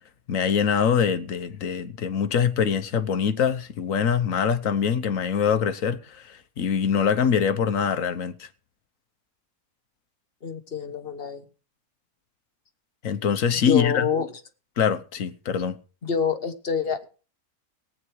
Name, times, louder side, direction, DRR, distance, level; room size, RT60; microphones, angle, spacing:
voice 1, 0.3-8.5 13.0-14.1 14.8-15.8, left 7 dB, 65° left, 1.4 m, -24 dB
voice 2, 10.4-11.4 13.6-14.3 16.0-17.1, left 7 dB, 45° left, 1.4 m, -26 dB
18.5 x 9.0 x 4.7 m
omnidirectional pair, 1.5 m